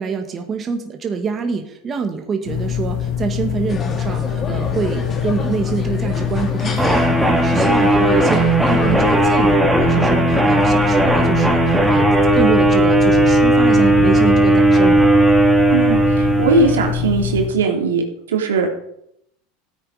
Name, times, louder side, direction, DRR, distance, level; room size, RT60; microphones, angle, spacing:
voice 1, 0.0-12.1 12.3-15.1, right 5 dB, 30° right, 5 dB, 1.9 m, -25 dB
sound 1, 2.4-17.5, left 8 dB, 65° left, 2.5 m, -24 dB
sound 2, 3.7-9.3, left 4 dB, 35° left, 2.9 m, -30 dB
sound 3, 6.8-17.0, right 2 dB, 5° right, 3.1 m, -15 dB
voice 2, 15.7-18.0 18.3-18.7, right 4 dB, 85° right, 2 dB, 3.2 m, -19 dB
15.0 x 8.9 x 5.0 m, 0.75 s
hypercardioid pair, 95°, 0 cm